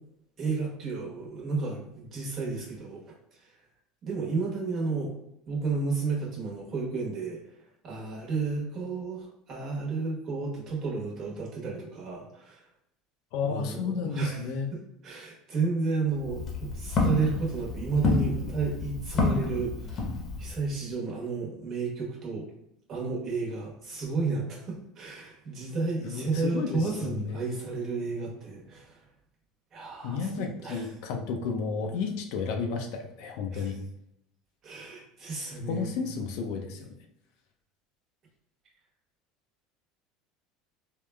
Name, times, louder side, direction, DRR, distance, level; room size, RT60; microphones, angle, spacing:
voice 1, 0.4-3.0 4.0-5.1 5.5-7.4 7.8-12.6 13.4-14.5 15.0-19.7 20.4-22.5 22.9-29.0 29.7-30.8 33.5-33.7 34.6-36.1, right 4 dB, 50° right, -3 dB, 1.2 m, -32 dB
voice 2, 13.3-14.7 26.0-27.4 30.0-33.8 35.6-36.9, left 5 dB, 70° left, 3 dB, 0.4 m, -32 dB
Walk footsteps, 16.1-20.7, left 3 dB, 45° left, 0.8 m, -29 dB
3.5 x 2.3 x 2.2 m, 0.79 s
hypercardioid pair, 90°, 0 cm